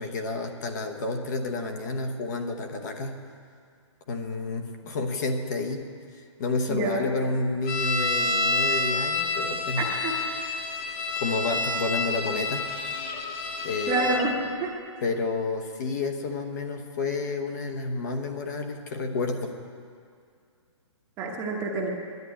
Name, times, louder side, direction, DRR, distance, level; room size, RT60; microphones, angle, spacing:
voice 1, 0.0-3.1 4.1-5.8 6.4-9.8 11.2-12.7 13.6-14.2 15.0-19.5, left 3 dB, 35° left, 5 dB, 1.0 m, -30 dB
voice 2, 6.7-7.1 9.8-10.1 13.9-14.3 14.6-14.7 21.2-21.9, right 3 dB, 15° right, 0 dB, 1.0 m, -27 dB
sound 1, 7.7-14.3, left 3 dB, 15° left, 0.5 m, -28 dB
11.0 x 9.9 x 9.2 m, 2.3 s
hypercardioid pair, 175°, 16 cm